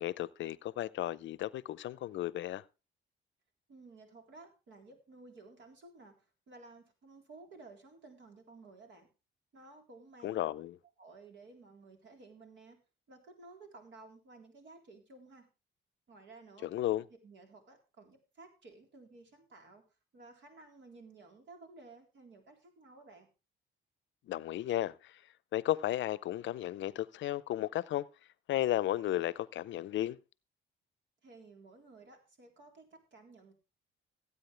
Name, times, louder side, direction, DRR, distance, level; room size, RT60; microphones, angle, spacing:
voice 1, 0.0-2.6 10.2-10.8 16.6-17.0 24.3-24.9 25.5-28.1 28.5-30.2, left 13 dB, 70° left, 0.6 m, -34 dB
voice 2, 3.7-6.2 6.5-9.1 9.5-10.4 11.0-12.8 13.1-15.5 16.1-16.7 17.2-19.8 20.1-23.3 31.2-33.5, right 3 dB, 70° right, 3.8 m, -55 dB
17.5 x 8.5 x 3.3 m
cardioid pair, 90°, 20 cm